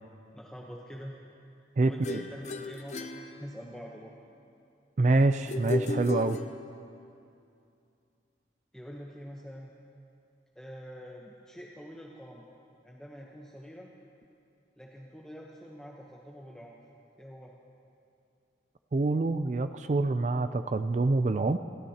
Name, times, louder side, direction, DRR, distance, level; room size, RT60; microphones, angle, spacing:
voice 1, 0.3-1.2 1.6-4.1 8.7-9.7 10.5-12.5 12.8-13.9 14.8-16.8 17.2-17.5, equal, 5° left, -3 dB, 0.8 m, -45 dB
voice 2, 1.8-2.2 5.0-6.4 18.9-21.6, right 2 dB, 40° right, 10 dB, 0.4 m, -26 dB
sound 1, 2.0-4.0 5.5-7.0, left 2 dB, 40° left, 0.7 m, -35 dB
28.5 x 13.5 x 2.8 m, 2.6 s
head